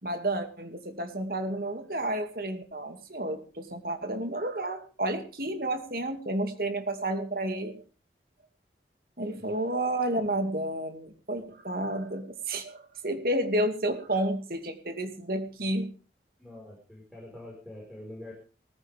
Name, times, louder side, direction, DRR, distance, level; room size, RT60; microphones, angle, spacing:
voice 1, 0.0-7.8 9.2-15.9, right 1 dB, 55° right, 6 dB, 2.5 m, -31 dB
voice 2, 16.4-18.3, left 1 dB, ahead, -3 dB, 5.4 m, -45 dB
19.0 x 15.0 x 3.6 m, 0.36 s
head